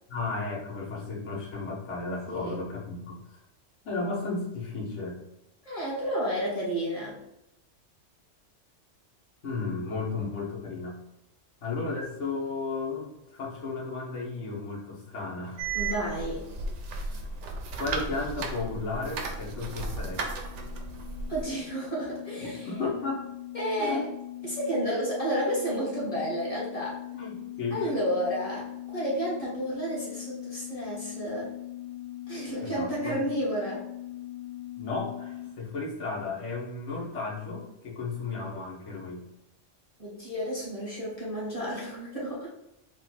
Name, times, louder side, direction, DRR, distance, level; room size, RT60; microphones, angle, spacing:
voice 1, 0.1-3.4 3.8-5.2 9.4-11.0 11.6-15.7 17.1-17.2 17.8-20.4 22.4-23.2 23.8-24.0 27.1-27.9 32.6-33.2 34.7-39.2, left 3 dB, 70° left, -4 dB, 1.4 m, -34 dB
voice 2, 5.7-7.2 15.7-16.5 21.3-22.7 23.5-24.1 24.4-27.0 27.7-31.5 32.3-33.9 40.0-42.5, equal, 30° left, -6 dB, 1.7 m, -31 dB
sound 1, 15.6-21.4, right 3 dB, 75° right, 1.0 m, -35 dB
sound 2, 19.3-35.5, left 15 dB, 55° left, 0.3 m, -41 dB
4.1 x 2.4 x 4.1 m, 0.86 s
omnidirectional pair, 1.3 m